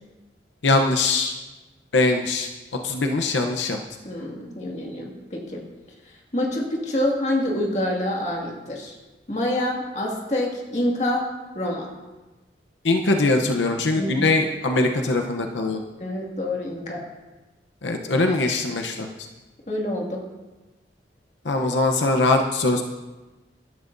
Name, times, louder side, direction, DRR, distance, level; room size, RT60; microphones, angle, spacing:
voice 1, 0.6-1.3 1.9-2.5 2.8-3.8 12.8-15.8 17.8-19.1 21.4-22.8, left 2 dB, 90° left, 3 dB, 0.8 m, -21 dB
voice 2, 4.0-5.6 6.3-9.0 9.3-11.9 14.0-14.1 16.0-17.0 19.7-20.2, left 1 dB, 40° left, -1 dB, 2.1 m, -26 dB
16.5 x 12.0 x 2.7 m, 1.2 s
head